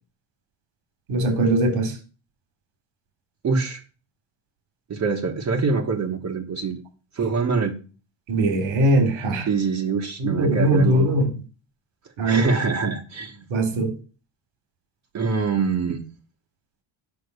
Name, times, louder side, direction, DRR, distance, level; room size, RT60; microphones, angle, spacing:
voice 1, 1.1-1.9 8.3-9.5 10.2-11.3 12.2-12.5 13.5-13.9, right 1 dB, 85° right, 7 dB, 3.3 m, -20 dB
voice 2, 3.4-3.8 4.9-6.8 7.1-7.7 9.5-11.0 12.2-13.5 15.1-16.0, right 4 dB, 35° right, 0 dB, 1.3 m, -24 dB
8.2 x 5.8 x 6.8 m, 0.36 s
cardioid pair, 140°, 47 cm